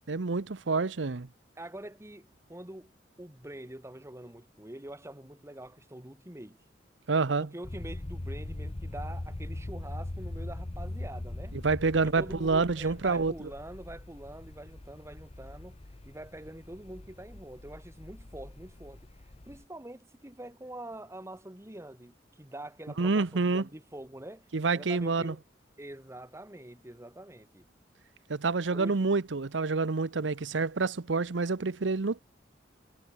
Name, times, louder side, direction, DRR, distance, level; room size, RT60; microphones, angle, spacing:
voice 1, 0.1-1.3 7.1-7.5 11.6-13.3 23.0-23.6 24.5-25.3 28.3-32.2, right 4 dB, 85° right, 0.8 m, -28 dB
voice 2, 1.6-2.9 3.2-6.6 7.4-11.6 11.9-15.8 16.0-19.0 19.5-24.5 24.7-25.4 25.8-27.6 28.7-29.1, right 1 dB, 15° right, 1.6 m, -45 dB
sound 1, 7.6-19.6, left 1 dB, 35° left, 0.8 m, -41 dB
head